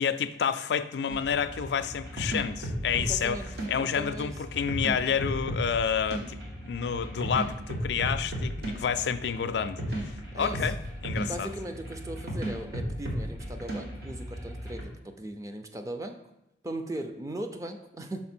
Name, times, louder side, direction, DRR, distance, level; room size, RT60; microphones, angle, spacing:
voice 1, 0.0-3.4 3.7-6.4 6.6-10.1 10.4-10.8 11.0-11.5, left 7 dB, 70° left, 12 dB, 0.3 m, -29 dB
sound 1, 1.1-14.8, equal, 65° right, 1.4 m, -35 dB
voice 2, 3.0-3.5 3.8-4.3 10.3-10.7 11.3-16.2 16.6-18.2, right 1 dB, 20° right, 6 dB, 0.4 m, -38 dB
5.8 x 4.4 x 4.3 m, 0.89 s
head